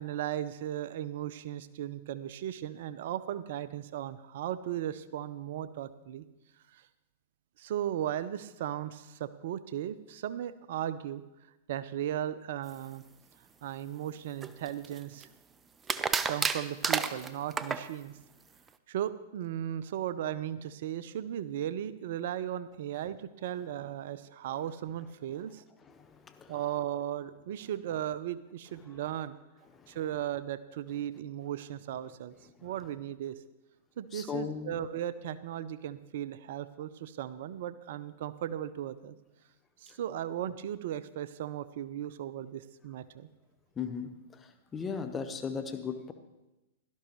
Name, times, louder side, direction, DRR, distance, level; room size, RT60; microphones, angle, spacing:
voice 1, 0.0-6.3 6.7-6.8 7.6-11.2 11.7-13.0 13.6-15.3 16.3-18.1 18.9-25.6 26.5-29.4 29.9-32.4 32.6-33.4 34.0-39.2 39.8-43.3, right 11 dB, 60° right, 15 dB, 0.5 m, -36 dB
sound 1, 14.4-15.2 15.9-17.9, right 5 dB, 20° right, 0.6 m, -30 dB
voice 2, 25.9-26.5 34.1-34.8 43.8-44.1 44.7-46.1, left 6 dB, 20° left, 8 dB, 1.2 m, -36 dB
17.0 x 12.5 x 3.1 m, 1.0 s
hypercardioid pair, 105°, 0 cm